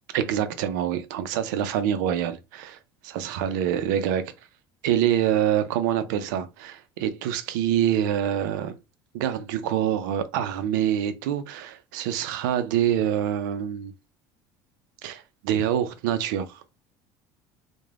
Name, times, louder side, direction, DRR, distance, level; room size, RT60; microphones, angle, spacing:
voice 1, 0.1-4.3 4.8-8.8 9.1-13.9 15.0-16.6, right 10 dB, 85° right, 0.4 m, -26 dB
3.2 x 2.1 x 2.3 m
supercardioid pair, 90°, 10 cm